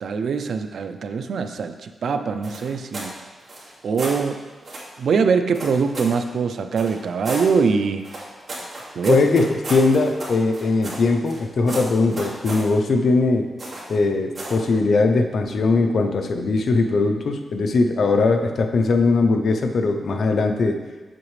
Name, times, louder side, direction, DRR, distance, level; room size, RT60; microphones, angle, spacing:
voice 1, 0.0-3.1 3.8-4.5 5.0-8.1 9.0-9.2, right 5 dB, 75° right, 8 dB, 0.5 m, -23 dB
sound 1, 2.4-3.1 3.4-4.2 4.6-4.9 5.5-6.2 6.8-7.5 8.0-11.4 11.7-12.7 13.6-13.9 14.3-14.6, right 2 dB, 45° right, 2.5 m, -33 dB
voice 2, 9.1-9.4 9.7-13.5 13.9-20.8, left 3 dB, 65° left, 5 dB, 0.7 m, -20 dB
8.0 x 7.6 x 3.3 m, 1.3 s
cardioid pair, 95°, 0 cm